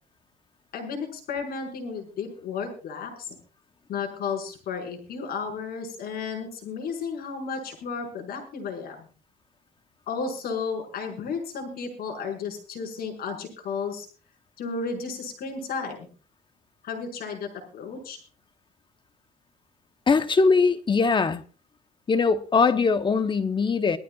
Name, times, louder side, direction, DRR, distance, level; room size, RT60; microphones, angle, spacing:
voice 1, 0.7-3.4 3.9-9.1 10.1-14.1 14.6-16.1 16.8-18.2, left 5 dB, 65° left, 5.4 m, -33 dB
voice 2, 20.1-21.4 22.1-24.0, left 4 dB, 30° left, 1.0 m, -21 dB
21.5 x 14.0 x 2.4 m
cardioid pair, 110°, 17 cm